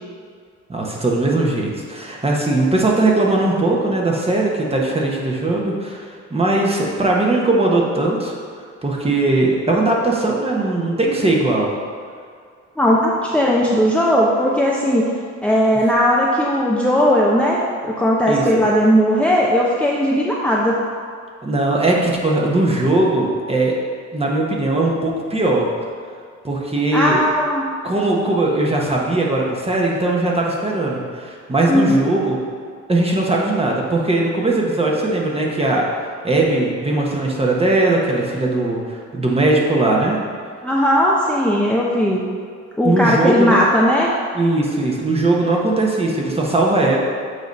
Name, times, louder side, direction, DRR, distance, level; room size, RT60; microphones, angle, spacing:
voice 1, 0.7-8.4 8.8-11.7 18.3-18.7 21.4-23.7 24.1-25.7 26.4-27.2 27.8-32.4 32.9-35.8 36.2-40.2 42.8-43.6 44.3-47.0, right 2 dB, 20° right, -2 dB, 1.2 m, -19 dB
voice 2, 12.8-15.1 15.4-20.8 26.9-27.6 31.7-32.1 40.6-42.2 42.8-44.1, equal, 5° left, -5 dB, 0.7 m, -17 dB
8.0 x 3.1 x 5.3 m, 2.1 s
cardioid pair, 90°, 30 cm